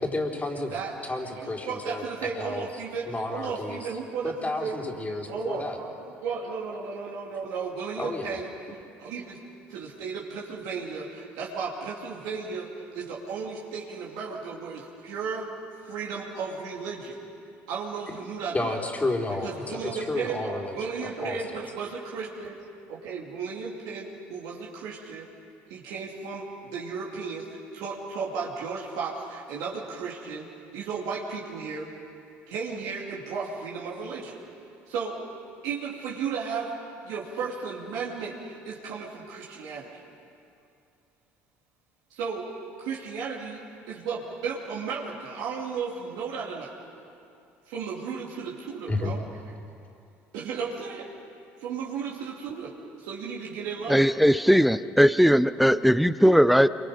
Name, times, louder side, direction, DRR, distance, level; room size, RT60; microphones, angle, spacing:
voice 1, 0.0-0.8 1.0-2.0 2.4-2.6 3.1-3.9 4.2-5.8 8.0-8.4 18.1-18.2 18.5-20.8 21.0-21.4 48.9-49.1, left 2 dB, 25° left, 1 dB, 4.0 m, -31 dB
voice 2, 0.6-0.9 1.4-9.4 9.7-12.7 12.9-15.5 15.9-17.2 17.7-18.8 19.4-22.6 22.9-25.3 25.7-27.5 27.7-30.5 30.7-31.9 32.5-34.4 34.9-35.2 35.6-36.7 37.0-40.0 42.1-42.4 42.8-46.7 47.7-49.2 50.3-51.1 51.6-52.7 53.0-54.1, right 5 dB, 75° right, -4 dB, 2.8 m, -34 dB
voice 3, 53.9-56.7, equal, ahead, 15 dB, 0.7 m, -19 dB
28.0 x 24.5 x 5.1 m, 2.5 s
hypercardioid pair, 65°, 7 cm